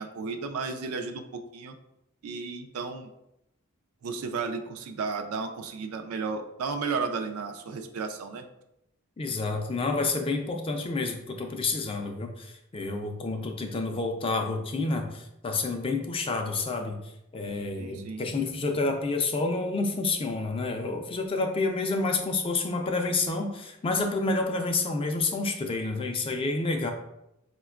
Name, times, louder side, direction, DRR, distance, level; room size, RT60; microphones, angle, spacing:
voice 1, 0.0-1.7 2.2-3.1 4.0-8.5 17.8-18.3, right 4 dB, 80° right, 6 dB, 0.4 m, -33 dB
voice 2, 9.2-17.0 17.3-26.9, left 3 dB, 25° left, 4 dB, 0.3 m, -29 dB
4.3 x 2.2 x 2.3 m, 0.85 s
head